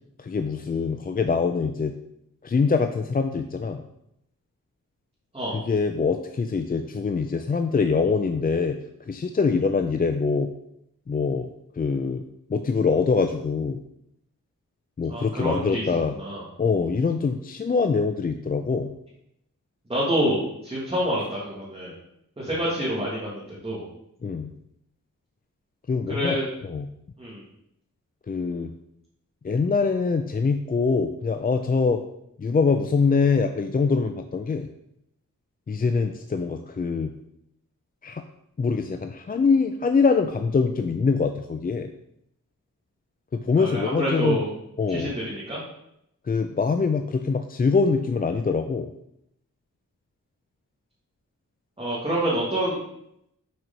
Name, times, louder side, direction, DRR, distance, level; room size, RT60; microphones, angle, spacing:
voice 1, 0.2-1.9 2.4-3.8 5.5-8.8 9.1-10.5 11.1-12.2 12.5-13.8 15.0-16.1 16.6-18.9 24.2-24.5 25.9-26.9 28.3-28.7 29.4-32.0 32.4-34.7 35.7-37.1 38.0-38.2 38.6-41.9 43.3-44.4 44.8-45.2 46.2-48.9, left 4 dB, 30° left, 6 dB, 0.4 m, -24 dB
voice 2, 15.1-15.8 16.2-16.4 19.9-21.9 22.4-23.9 26.1-26.5 27.2-27.4 43.6-44.5 44.9-45.6 51.8-52.8, right 1 dB, 20° right, -7 dB, 1.9 m, -27 dB
6.2 x 4.6 x 5.1 m, 0.79 s
wide cardioid pair, 120°, 32 cm